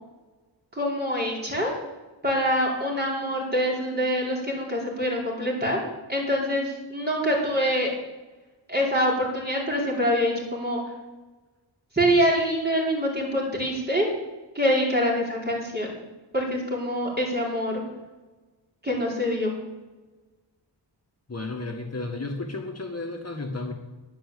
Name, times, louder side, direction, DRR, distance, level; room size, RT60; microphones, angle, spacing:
voice 1, 0.7-1.7 2.2-5.8 6.1-7.9 8.7-10.8 11.9-14.1 14.5-15.9 16.3-17.8 18.8-19.5, equal, 20° right, -3 dB, 4.8 m, -25 dB
voice 2, 21.3-23.7, left 2 dB, 35° left, 1 dB, 1.8 m, -33 dB
10.5 x 10.0 x 8.6 m, 1.2 s
wide cardioid pair, 80°, 43 cm